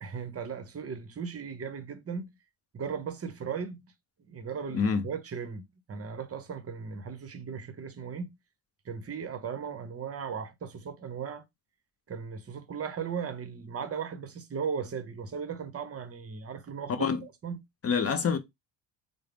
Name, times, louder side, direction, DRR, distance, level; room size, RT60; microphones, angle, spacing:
voice 1, 0.0-2.3 2.7-3.8 4.2-8.3 8.8-11.4 12.1-17.6, right 6 dB, 30° right, 0.7 m, -37 dB
voice 2, 17.8-18.4, left 6 dB, 30° left, 0.6 m, -26 dB
3.6 x 2.0 x 3.3 m
cardioid pair, 75°, 47 cm